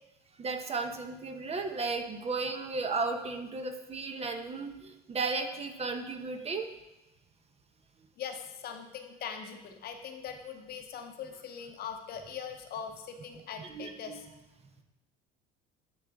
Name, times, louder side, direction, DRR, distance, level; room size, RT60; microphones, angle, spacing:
voice 1, 0.4-6.7 13.6-14.2, right 3 dB, 30° right, 6 dB, 0.8 m, -34 dB
voice 2, 8.2-14.3, left 7 dB, 50° left, 6 dB, 0.9 m, -41 dB
10.0 x 3.9 x 3.5 m, 0.96 s
hypercardioid pair, 80°, 21 cm